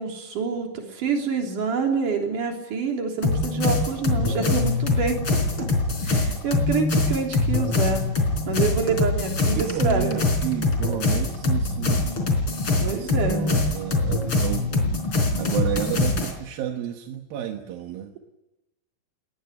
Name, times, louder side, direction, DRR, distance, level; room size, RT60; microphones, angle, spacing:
voice 1, 0.0-5.2 5.6-5.7 6.0-8.0 8.5-10.2 12.8-13.4, right 4 dB, 65° right, 2 dB, 4.9 m, -27 dB
sound 1, 3.2-16.3, left 2 dB, 35° left, 4.7 m, -23 dB
voice 2, 9.6-12.1 12.8-18.1, right 10 dB, 85° right, 4 dB, 3.1 m, -31 dB
21.0 x 19.5 x 9.5 m, 0.99 s
omnidirectional pair, 4.1 m